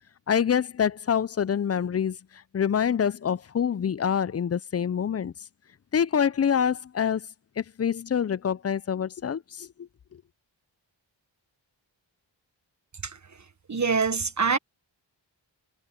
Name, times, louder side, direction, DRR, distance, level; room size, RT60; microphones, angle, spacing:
voice 1, 0.3-2.2 2.5-5.3 5.9-7.3 7.6-9.9, left 8 dB, 35° left, 0.4 m, -26 dB
voice 2, 13.7-14.6, right 5 dB, 40° right, 1.3 m, -25 dB
wide cardioid pair, 70°, 45 cm